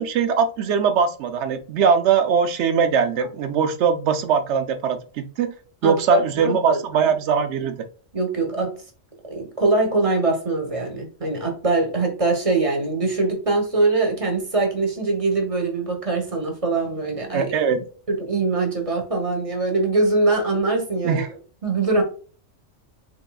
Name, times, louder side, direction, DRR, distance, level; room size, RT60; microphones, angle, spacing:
voice 1, 0.0-5.5 5.8-7.9 17.3-17.8 21.0-21.3, right 6 dB, 70° right, 8 dB, 0.9 m, -21 dB
voice 2, 5.8-7.1 8.1-8.7 9.3-17.5 18.1-21.2 21.6-22.0, right 3 dB, 30° right, 2 dB, 1.0 m, -22 dB
3.8 x 3.7 x 2.2 m, 0.39 s
omnidirectional pair, 1.3 m